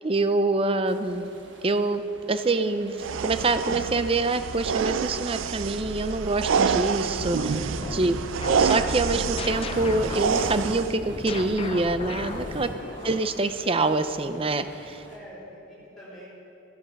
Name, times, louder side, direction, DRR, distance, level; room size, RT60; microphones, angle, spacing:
voice 1, 0.0-1.3 1.6-2.0 2.3-8.1 8.5-12.7 13.0-15.0, right 2 dB, 30° right, 10 dB, 0.5 m, -26 dB
sound 1, 0.9-15.2, right 2 dB, 65° right, 1.5 m, -47 dB
sound 2, 3.0-10.9, right 6 dB, 80° right, 0.4 m, -27 dB
sound 3, 7.2-13.4, left 2 dB, 30° left, 0.6 m, -36 dB
voice 2, 15.1-16.2, equal, ahead, -13 dB, 3.7 m, -46 dB
14.0 x 12.0 x 5.3 m, 2.9 s
head